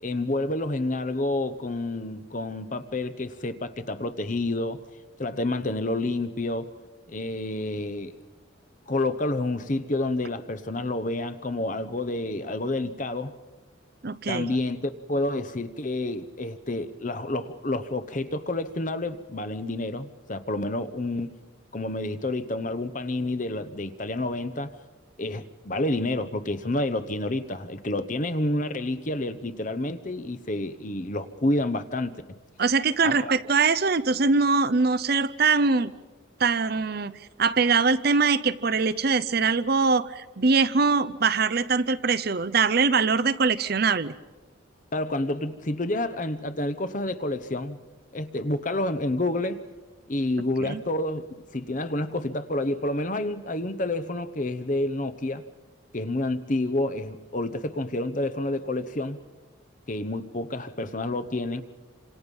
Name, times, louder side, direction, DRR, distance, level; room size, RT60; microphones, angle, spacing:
voice 1, 0.0-4.8 5.2-6.7 7.1-8.2 8.9-13.4 14.3-21.4 21.7-24.8 25.2-32.1 33.0-33.3 44.9-47.8 48.1-49.6 50.1-51.2 51.5-55.4 55.9-59.2 59.9-61.6, left 2 dB, 40° left, 12 dB, 1.0 m, -29 dB
voice 2, 14.0-14.5 32.6-35.9 36.4-37.1 37.4-44.1 50.6-50.8, right 4 dB, 50° right, 14 dB, 0.7 m, -22 dB
28.0 x 26.0 x 5.5 m, 1.2 s
head